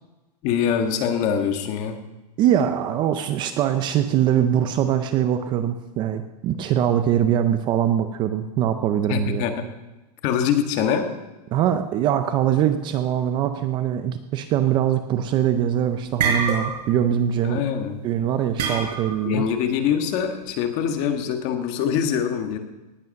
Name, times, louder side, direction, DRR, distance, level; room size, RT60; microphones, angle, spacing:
voice 1, 0.4-2.0 9.1-9.7 10.2-11.1 17.4-18.0 19.2-22.6, left 8 dB, 35° left, 6 dB, 1.6 m, -24 dB
voice 2, 2.4-9.5 11.5-17.6 18.0-19.4, right 10 dB, 20° right, 10 dB, 0.5 m, -22 dB
sound 1, 15.3-15.6 15.9-17.0 17.3-17.6 18.6-19.3, right 5 dB, 90° right, 4.4 m, -25 dB
18.5 x 8.3 x 6.5 m, 1.1 s
supercardioid pair, 165°, 21 cm